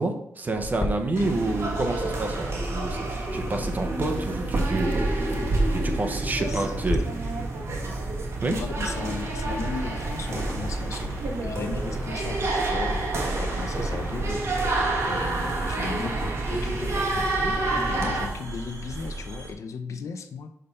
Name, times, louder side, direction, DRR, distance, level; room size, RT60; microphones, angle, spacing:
voice 1, 0.0-7.1 8.4-8.6, right 2 dB, 35° right, 5 dB, 0.9 m, -29 dB
sound 1, 0.5-7.0, left 2 dB, 40° left, 1.2 m, -37 dB
sound 2, 1.2-18.3, right 2 dB, 55° right, 1.5 m, -28 dB
sound 3, 2.8-19.5, right 2 dB, 80° right, 1.5 m, -37 dB
voice 2, 6.4-6.7 8.4-14.6 15.0-17.6 17.9-20.5, left 5 dB, 70° left, 8 dB, 0.7 m, -36 dB
5.6 x 5.1 x 5.5 m, 0.77 s
wide cardioid pair, 135°, 5 cm